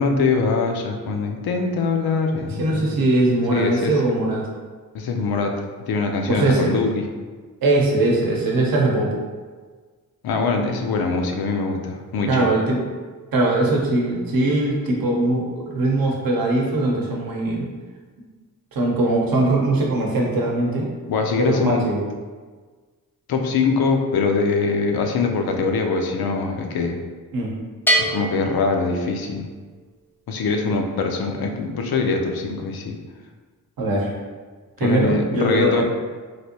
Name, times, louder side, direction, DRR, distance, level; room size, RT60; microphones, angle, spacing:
voice 1, 0.0-3.0 3.5-3.9 4.9-5.5 5.9-7.0 10.2-12.5 21.1-21.9 23.3-27.0 28.0-29.5 30.3-33.0 34.8-35.8, left 4 dB, 80° left, 3 dB, 0.5 m, -23 dB
voice 2, 2.5-4.5 6.3-6.7 7.6-9.1 12.3-12.8 13.3-17.7 18.7-20.9 21.4-22.0 27.3-27.5 33.8-34.1 34.8-35.8, right 2 dB, 70° right, -1 dB, 0.8 m, -21 dB
Bell, 27.9-29.6, right 1 dB, 5° left, 0.4 m, -24 dB
3.2 x 2.5 x 2.7 m, 1.5 s
wide cardioid pair, 120°, 36 cm